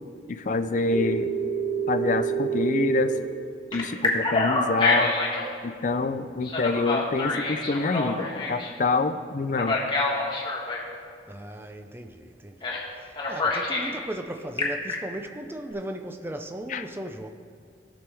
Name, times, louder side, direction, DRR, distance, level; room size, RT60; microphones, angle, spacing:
voice 1, 0.3-1.3 1.9-3.1 3.7-5.1 5.6-9.8 16.7-16.8, left 3 dB, 45° left, 0.5 m, -26 dB
Telephone, 0.9-3.2 3.7-5.5 6.4-8.7 9.5-10.9 12.6-12.9 13.1-13.9 14.4-14.9, left 1 dB, 30° left, 1.4 m, -27 dB
voice 2, 11.3-17.3, right 1 dB, 15° right, 0.5 m, -37 dB
16.5 x 6.2 x 3.4 m
head